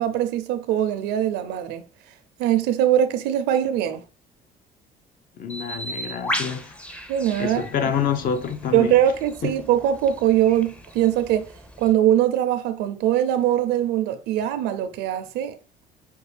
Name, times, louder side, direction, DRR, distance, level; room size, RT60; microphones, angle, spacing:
voice 1, 0.0-1.8 2.4-4.0 7.1-7.6 8.7-11.5 11.8-15.6, right 11 dB, 90° right, 0.6 m, -22 dB
voice 2, 5.4-6.7 7.4-8.9 9.4-9.5, left 7 dB, 55° left, 0.7 m, -27 dB
Bird, 5.5-11.9, equal, 5° left, 0.5 m, -36 dB
5.2 x 2.4 x 3.2 m
cardioid pair, 110°, 17 cm